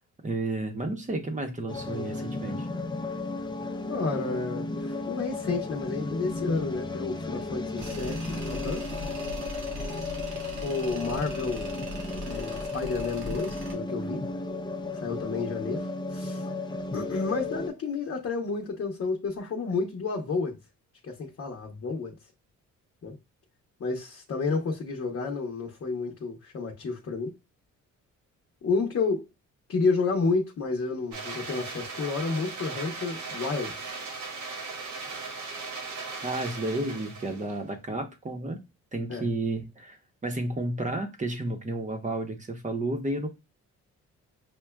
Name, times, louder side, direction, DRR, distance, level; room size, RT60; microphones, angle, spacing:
voice 1, 0.2-2.7 36.2-38.6 38.9-43.3, right 2 dB, 25° right, 0.9 m, -32 dB
sound 1, 1.7-17.7, left 3 dB, 15° left, 0.5 m, -34 dB
voice 2, 3.9-8.9 10.6-11.7 12.2-14.2 15.0-16.5 16.9-20.6 21.0-22.2 23.0-23.1 23.8-27.3 28.6-29.3 29.7-33.9 39.1-39.2, left 4 dB, 50° left, 1.0 m, -30 dB
Tools, 7.8-13.8, right 1 dB, 90° right, 1.0 m, -40 dB
sound 2, 31.1-37.6, right 4 dB, 70° right, 1.2 m, -38 dB
6.0 x 2.2 x 2.2 m
cardioid pair, 90°, 30 cm